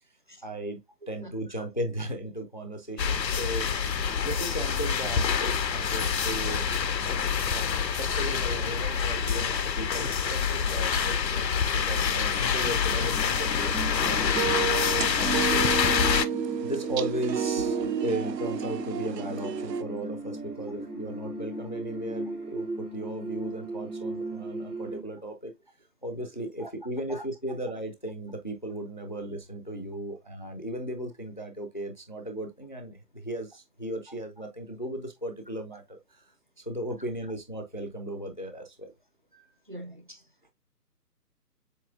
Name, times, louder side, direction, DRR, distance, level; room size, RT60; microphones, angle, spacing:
voice 1, 0.4-0.8 1.1-6.7 7.0-14.3 14.7-14.8 15.1-15.8 16.6-25.5 26.0-36.2 36.6-38.9, right 1 dB, 30° left, 0.4 m, -36 dB
voice 2, 1.0-1.7 21.0-21.2 26.6-26.7 27.1-27.2 39.3-40.3, right 1 dB, 35° right, 0.5 m, -45 dB
sound 1, 3.0-16.3, left 7 dB, 85° left, 0.7 m, -26 dB
sound 2, 13.1-25.0, right 1 dB, 65° right, 3.7 m, -37 dB
sound 3, 14.0-19.8, right 7 dB, 80° right, 0.6 m, -31 dB
7.5 x 2.8 x 2.4 m
figure-of-eight pair, 145°, 49 cm